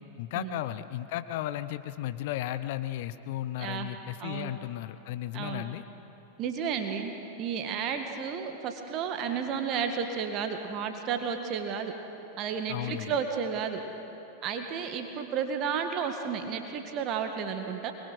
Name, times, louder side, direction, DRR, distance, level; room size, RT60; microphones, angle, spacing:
voice 1, 0.2-5.8 12.7-13.2, left 13 dB, 50° left, 12 dB, 0.7 m, -34 dB
voice 2, 3.6-3.9 4.2-4.5 5.3-5.6 6.4-7.1 7.4-11.9 12.4-13.8 14.4-17.9, right 6 dB, 35° right, 5 dB, 1.9 m, -32 dB
24.5 x 21.5 x 6.3 m, 3.0 s
figure-of-eight pair, 90°, 0 cm